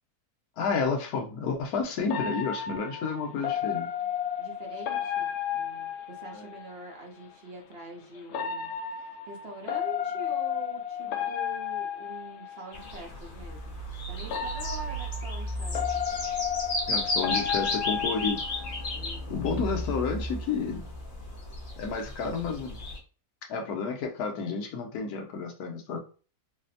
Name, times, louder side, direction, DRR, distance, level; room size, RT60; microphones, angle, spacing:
voice 1, 0.6-3.9 6.3-6.4 16.9-18.4 19.3-20.9 21.8-22.8 23.5-26.0, left 5 dB, 85° left, 3 dB, 1.2 m, -31 dB
sound 1, 2.1-6.7 8.3-12.9 14.2-18.9, left 8 dB, 65° left, 0.7 m, -33 dB
voice 2, 4.4-13.8 14.1-16.0 18.9-19.7, right 2 dB, 55° right, 0 dB, 0.8 m, -45 dB
sound 2, 12.7-23.0, left 1 dB, 35° left, 0.9 m, -34 dB
4.1 x 2.1 x 2.6 m, 0.38 s
omnidirectional pair, 1.6 m